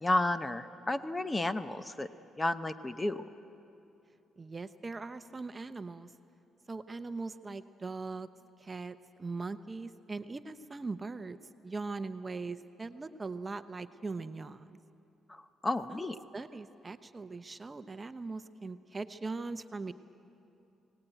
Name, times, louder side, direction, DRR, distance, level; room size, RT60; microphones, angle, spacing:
voice 1, 0.0-2.1 2.4-3.2 15.3-16.2, left 1 dB, 20° left, 11 dB, 0.8 m, -32 dB
voice 2, 4.4-6.1 6.7-8.3 8.6-11.4 11.6-14.8 15.9-16.1 16.3-19.9, right 3 dB, 25° right, 11 dB, 0.7 m, -40 dB
21.5 x 18.0 x 9.1 m, 2.8 s
cardioid pair, 90°, 0 cm